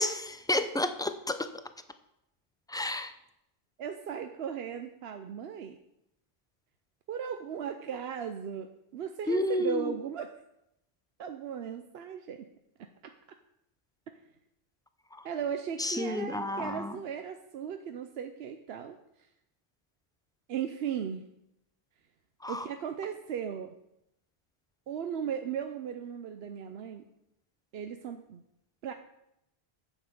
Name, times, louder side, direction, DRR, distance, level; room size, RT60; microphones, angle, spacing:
voice 1, 0.0-1.5 2.7-3.1 9.3-9.9 15.8-17.0 22.4-22.7, left 1 dB, 5° left, 10 dB, 0.4 m, -30 dB
voice 2, 3.8-5.8 7.1-10.3 11.2-12.5 12.8-13.1 15.2-19.0 20.5-21.3 22.5-23.7 24.9-27.0 27.7-28.4 28.8-28.9, right 8 dB, 75° right, 7 dB, 0.9 m, -37 dB
9.5 x 8.1 x 6.6 m, 0.84 s
omnidirectional pair, 1.1 m